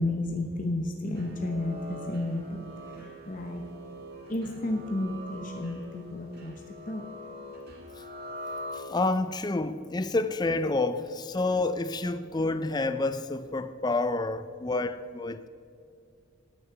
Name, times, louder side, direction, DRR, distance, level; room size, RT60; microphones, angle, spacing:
voice 1, 0.0-2.6 3.3-3.6 4.3-6.5 6.9-7.1, left 1 dB, 40° left, 0.8 m, -32 dB
sound 1, 1.1-9.3, equal, 50° right, 1.9 m, -43 dB
voice 2, 8.7-15.5, left 2 dB, 20° left, 0.4 m, -29 dB
9.6 x 9.5 x 6.7 m
head